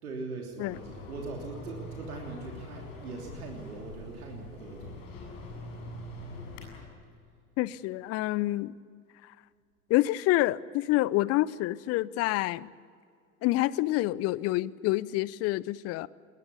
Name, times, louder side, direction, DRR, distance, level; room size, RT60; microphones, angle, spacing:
voice 1, 0.0-5.0, right 3 dB, 75° right, 0 dB, 3.3 m, -41 dB
sound 1, 0.7-6.8, left 2 dB, 60° left, 7.7 m, -44 dB
voice 2, 7.6-8.7 9.9-12.7 13.4-16.1, left 17 dB, 35° left, 21 dB, 0.7 m, -27 dB
21.5 x 20.0 x 8.3 m, 2.3 s
figure-of-eight pair, 90°, 44 cm